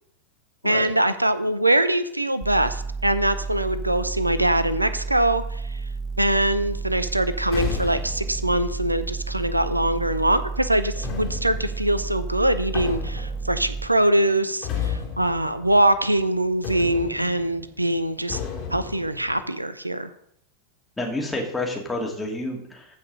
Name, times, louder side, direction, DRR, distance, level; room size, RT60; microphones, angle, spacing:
voice 1, 0.6-5.8 6.2-18.4 18.7-20.1, right 1 dB, 85° right, 13 dB, 0.6 m, -23 dB
sound 1, 2.4-13.9, right 4 dB, 15° right, 1.2 m, -32 dB
sound 2, 6.6-10.0 11.0-16.3 16.6-19.5, left 7 dB, 40° left, 2.7 m, -35 dB
voice 2, 21.0-22.9, left 2 dB, 10° left, 0 dB, 2.6 m, -29 dB
14.5 x 5.2 x 5.5 m, 0.72 s
figure-of-eight pair, 90°, 0 cm